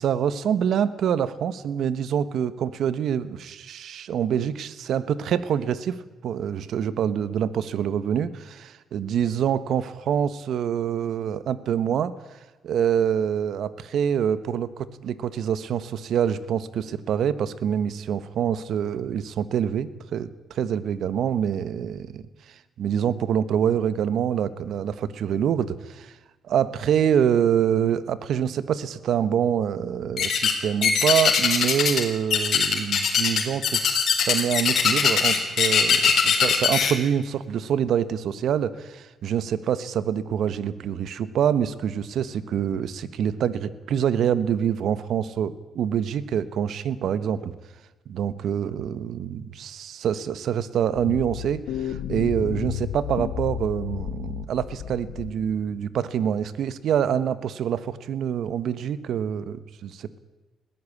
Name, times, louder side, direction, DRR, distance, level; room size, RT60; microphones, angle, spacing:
voice 1, 0.0-6.0 6.2-12.1 12.6-22.2 22.8-26.1 26.5-47.5 48.1-60.2, right 8 dB, 70° right, 15 dB, 1.2 m, -26 dB
sound 1, 30.2-30.5 30.8-32.0 32.3-36.9, left 7 dB, 60° left, 4.0 m, -20 dB
sound 2, 51.0-55.6, left 10 dB, 85° left, 1.2 m, -32 dB
20.5 x 15.5 x 8.5 m, 1.1 s
cardioid pair, 90°, 0 cm